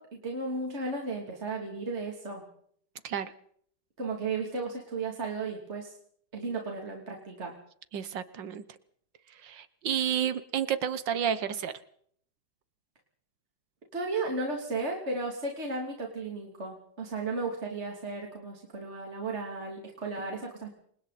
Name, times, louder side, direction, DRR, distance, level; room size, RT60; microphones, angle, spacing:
voice 1, 0.0-2.4 4.0-5.9 6.3-7.5 13.9-20.7, right 3 dB, 35° right, 0 dB, 3.3 m, -34 dB
voice 2, 7.9-8.6 9.4-11.7, right 9 dB, 85° right, 13 dB, 1.8 m, -30 dB
28.5 x 24.5 x 4.2 m, 0.65 s
omnidirectional pair, 1.9 m